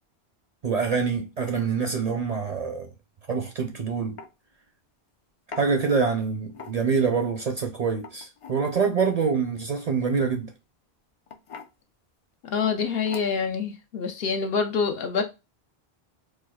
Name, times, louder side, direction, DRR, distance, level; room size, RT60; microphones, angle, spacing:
voice 1, 0.6-2.9 3.3-4.2 5.6-10.5, right 5 dB, 55° right, 0.5 m, -25 dB
sound 1, 3.5-3.7 4.2-4.3 5.5-5.7 6.5-7.0 7.9-8.6 10.2-10.5 11.3-11.7 12.6-12.8 13.1-13.5, left 5 dB, 55° left, 0.3 m, -42 dB
voice 2, 12.4-15.2, left 5 dB, 75° left, 0.9 m, -26 dB
4.3 x 2.3 x 2.2 m
omnidirectional pair, 1.0 m